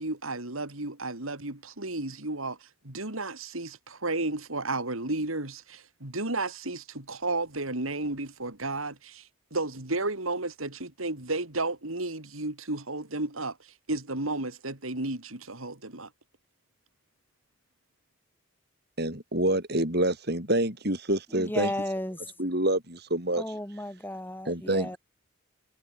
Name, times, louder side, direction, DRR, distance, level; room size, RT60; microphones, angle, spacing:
voice 1, 0.0-16.1, right 2 dB, 90° right, 4.1 m, -33 dB
voice 2, 19.0-21.7 22.4-23.4 24.5-25.0, right 1 dB, 50° right, 7.9 m, -27 dB
voice 3, 21.3-22.2 23.3-25.0, left 1 dB, 10° left, 6.8 m, -34 dB
head